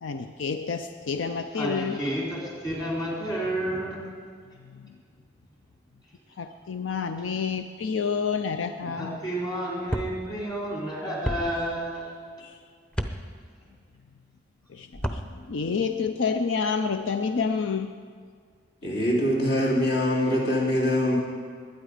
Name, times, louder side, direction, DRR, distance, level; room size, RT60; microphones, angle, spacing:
voice 1, 0.0-2.0 4.7-4.9 6.4-9.2 12.4-12.6 14.7-18.0, left 5 dB, 80° left, 8 dB, 0.5 m, -29 dB
voice 2, 1.5-4.0 8.9-12.1, right 1 dB, 20° left, -4 dB, 3.5 m, -30 dB
sound 1, 9.9-10.1 11.2-11.4 12.9-13.1 14.9-15.2, equal, 5° left, 0.7 m, -28 dB
voice 3, 18.8-21.2, equal, 55° left, -4 dB, 3.0 m, -23 dB
21.0 x 9.3 x 5.0 m, 2.1 s
head